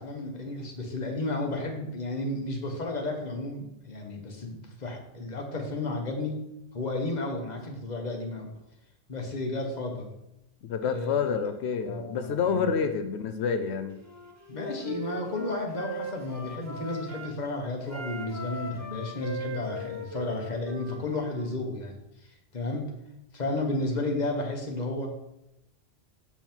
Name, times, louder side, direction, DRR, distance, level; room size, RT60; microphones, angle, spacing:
voice 1, 0.0-6.4 6.7-8.5 9.1-10.1 10.9-11.3 11.8-12.6 14.5-22.8 23.3-25.1, left 2 dB, 40° left, 2 dB, 1.4 m, -33 dB
voice 2, 10.6-14.0, left 6 dB, 90° left, 8 dB, 0.9 m, -28 dB
Wind instrument woodwind instrument, 14.0-17.4 17.8-21.5, right 1 dB, 15° right, 0.8 m, -39 dB
7.2 x 5.5 x 4.5 m, 0.83 s
omnidirectional pair, 1.1 m